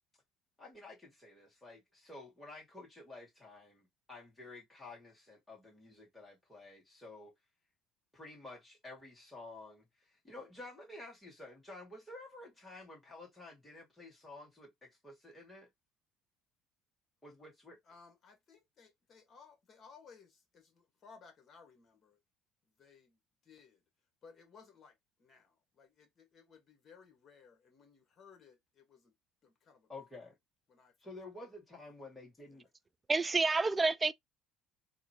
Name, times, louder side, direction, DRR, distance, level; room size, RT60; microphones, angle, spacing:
voice 1, 0.6-7.3 8.1-15.7 17.2-17.8 29.9-30.3 31.0-32.7, left 2 dB, 10° left, 2.3 m, -51 dB
voice 2, 17.9-22.2 22.8-23.8 24.2-29.1 29.4-29.9 30.7-30.9 32.5-32.6, left 5 dB, 40° left, 1.7 m, -60 dB
voice 3, 33.1-34.1, right 3 dB, 20° right, 0.3 m, -29 dB
3.7 x 2.5 x 2.9 m
cardioid pair, 105°, 0 cm